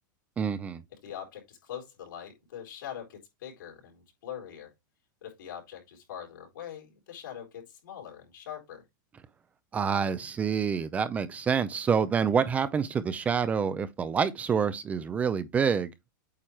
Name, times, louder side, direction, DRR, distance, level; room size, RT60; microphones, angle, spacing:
voice 1, 0.4-0.8 9.7-16.1, right 6 dB, 15° right, 0.4 m, -27 dB
voice 2, 1.0-4.7 5.2-8.8, left 9 dB, 90° left, 3.8 m, -43 dB
8.5 x 3.2 x 4.4 m
supercardioid pair, 160°, 11 cm